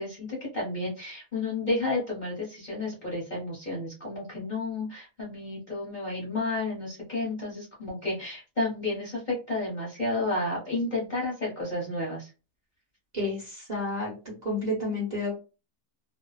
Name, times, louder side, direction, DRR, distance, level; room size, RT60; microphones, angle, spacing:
voice 1, 0.0-12.3, left 2 dB, 35° left, -5 dB, 0.9 m, -31 dB
voice 2, 13.1-14.1 14.4-15.4, left 2 dB, 35° right, -5 dB, 1.0 m, -30 dB
2.6 x 2.5 x 2.3 m, 0.31 s
omnidirectional pair, 1.6 m